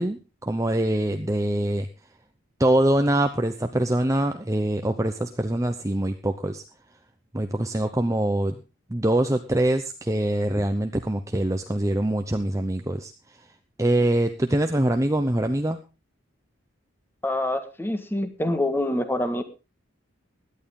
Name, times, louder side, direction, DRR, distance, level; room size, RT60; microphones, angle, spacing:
voice 1, 0.0-1.9 2.6-6.6 7.3-8.6 8.9-13.1 13.8-15.8, right 1 dB, 15° right, 6 dB, 0.8 m, -24 dB
voice 2, 17.2-19.4, left 1 dB, 10° left, 8 dB, 1.6 m, -26 dB
17.0 x 11.5 x 3.7 m, 0.30 s
head